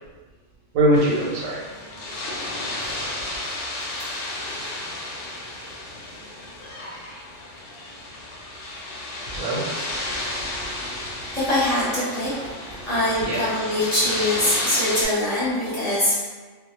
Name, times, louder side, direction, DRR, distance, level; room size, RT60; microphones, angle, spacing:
voice 1, 0.7-1.6 9.3-11.4 12.7-12.9 13.2-13.4, right 1 dB, 85° right, -4 dB, 1.1 m, -25 dB
sound 1, 0.9-15.1, left 2 dB, 70° left, 0.9 m, -32 dB
voice 2, 11.3-12.3 12.9-16.1, left 1 dB, 30° left, -11 dB, 0.9 m, -23 dB
2.3 x 2.0 x 2.9 m, 1.4 s
omnidirectional pair, 1.3 m